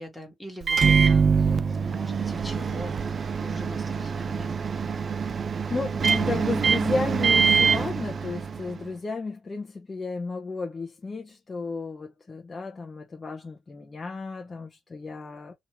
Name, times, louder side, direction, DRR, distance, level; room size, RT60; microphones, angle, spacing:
voice 1, 0.0-1.6 1.9-3.1 3.4-4.5, left 1 dB, 5° left, 1.4 m, -41 dB
Microwave oven, 0.6-8.8, right 6 dB, 45° right, 0.3 m, -24 dB
voice 2, 5.7-15.5, left 4 dB, 30° left, 0.7 m, -33 dB
2.9 x 2.7 x 3.0 m
cardioid pair, 90°, 0 cm